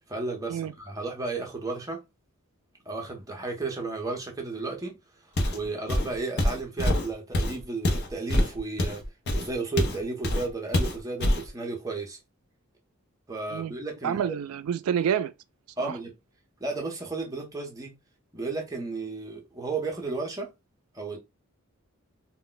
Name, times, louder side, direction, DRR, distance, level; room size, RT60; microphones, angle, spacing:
voice 1, 0.1-2.0 2.9-4.9 5.5-9.0 9.3-12.2 13.3-14.2 15.8-16.1 16.6-17.9 18.3-20.5 20.9-21.2, right 3 dB, 15° right, 0.7 m, -33 dB
Walk footsteps, 5.4-5.6 5.9-10.0 10.2-10.5 10.7-11.5, left 1 dB, 50° left, 0.6 m, -25 dB
voice 2, 14.0-15.3 15.8-16.0, right 8 dB, 75° right, 0.3 m, -28 dB
2.2 x 2.1 x 3.8 m
head